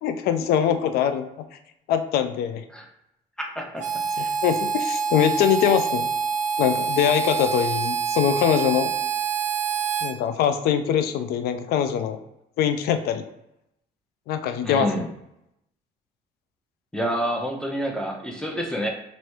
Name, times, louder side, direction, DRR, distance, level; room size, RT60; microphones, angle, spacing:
voice 1, 0.0-1.2 1.9-2.6 4.2-6.1 6.6-8.9 10.0-12.2 12.6-13.2 14.3-15.1, left 9 dB, 75° left, 9 dB, 0.5 m, -23 dB
voice 2, 3.4-3.8 4.2-4.3 14.6-15.1 16.9-18.9, equal, 5° left, 0 dB, 0.8 m, -28 dB
Harmonica, 3.8-10.1, right 6 dB, 50° right, 0.6 m, -26 dB
3.1 x 2.7 x 4.5 m, 0.83 s
cardioid pair, 90°, 16 cm